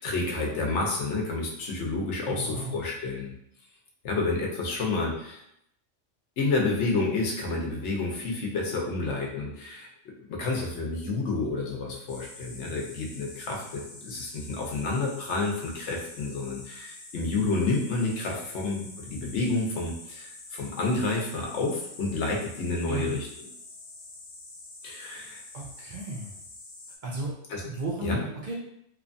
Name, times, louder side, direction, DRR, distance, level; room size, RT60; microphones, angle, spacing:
voice 1, 0.0-3.3 4.0-5.4 6.4-23.5 24.8-25.4 27.5-27.6 28.0-28.2, left 3 dB, 70° left, -1 dB, 1.0 m, -30 dB
voice 2, 2.3-2.8 22.9-23.2 25.5-26.3 27.0-27.3 27.6-28.5, right 2 dB, 60° right, -3 dB, 0.5 m, -34 dB
sound 1, 12.1-27.0, left 2 dB, 50° left, 0.6 m, -46 dB
2.9 x 2.2 x 2.5 m, 0.74 s
omnidirectional pair, 1.3 m